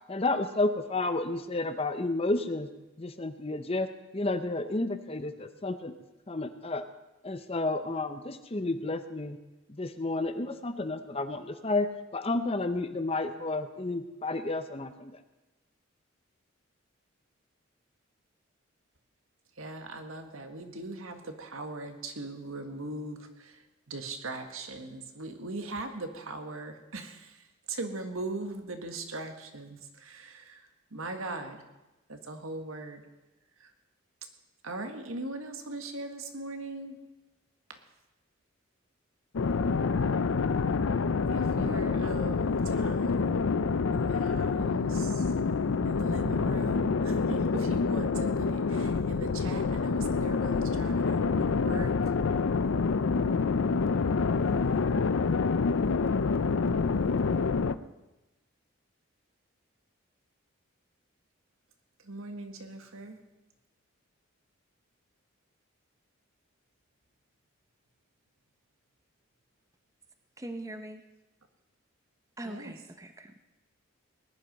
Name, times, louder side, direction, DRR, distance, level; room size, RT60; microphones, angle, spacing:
voice 1, 0.1-2.7 3.0-5.9 6.3-6.9 7.2-9.4 9.7-15.1, left 2 dB, 30° left, 10 dB, 0.8 m, -31 dB
voice 2, 19.6-31.6 32.1-33.0 33.6-33.7 34.6-37.0 41.3-43.4 43.9-45.4 45.9-52.0 62.0-63.2 72.4-72.7, right 2 dB, 80° right, 6 dB, 1.7 m, -40 dB
sound 1, 39.3-57.7, left 4 dB, 70° left, 0.5 m, -27 dB
voice 3, 70.4-71.0 72.4-73.4, right 1 dB, 15° right, 7 dB, 0.7 m, -41 dB
19.0 x 10.5 x 5.3 m, 1.0 s
head